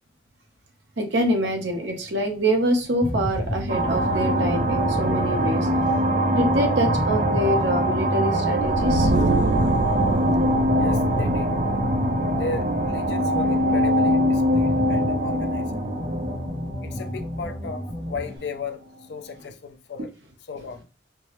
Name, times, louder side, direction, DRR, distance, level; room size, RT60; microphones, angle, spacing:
voice 1, 1.0-5.7 6.3-9.1, equal, 75° right, 0.8 m, -25 dB
sound 1, 3.0-18.4, equal, 5° left, 0.6 m, -32 dB
sound 2, 3.7-17.8, right 1 dB, 40° right, 0.4 m, -23 dB
voice 2, 10.8-11.5 12.3-15.8 16.8-18.8 19.1-20.1 20.5-20.8, left 4 dB, 65° left, 0.4 m, -35 dB
4.5 x 2.0 x 3.0 m
head